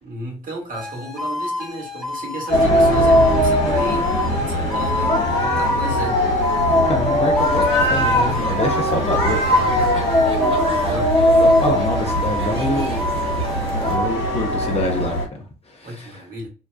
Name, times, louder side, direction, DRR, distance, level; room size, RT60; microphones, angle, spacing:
voice 1, 0.0-6.2 10.7-11.1 15.8-16.5, right 1 dB, 45° right, 1.2 m, -32 dB
sound 1, 0.7-9.0 9.5-11.2 11.5-14.1, left 1 dB, ahead, 0.6 m, -29 dB
sound 2, 2.5-15.3, left 1 dB, 60° left, 1.2 m, -19 dB
voice 2, 6.9-7.6 7.9-9.6 11.4-13.2 13.9-16.2, left 2 dB, 30° left, 0.8 m, -26 dB
sound 3, 7.4-14.0, right 2 dB, 30° right, 0.9 m, -32 dB
2.8 x 2.2 x 2.3 m
hypercardioid pair, 45°, 20 cm